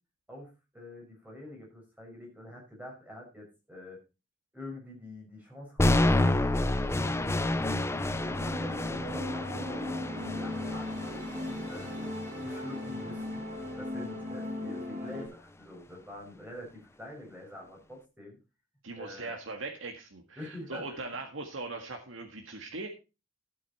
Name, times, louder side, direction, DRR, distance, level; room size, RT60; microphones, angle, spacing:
voice 1, 0.3-4.0 4.5-6.4 6.6-11.9 12.4-13.5 13.8-18.4 19.0-19.3 20.4-21.1, left 1 dB, 10° right, -1 dB, 5.6 m, -46 dB
sound 1, 5.8-13.8, left 1 dB, 15° left, 0.6 m, -30 dB
sound 2, 8.2-15.3, left 1 dB, 40° right, 4.0 m, -38 dB
voice 2, 18.8-22.9, right 3 dB, 80° right, 3 dB, 1.8 m, -40 dB
12.5 x 8.4 x 4.2 m, 0.29 s
head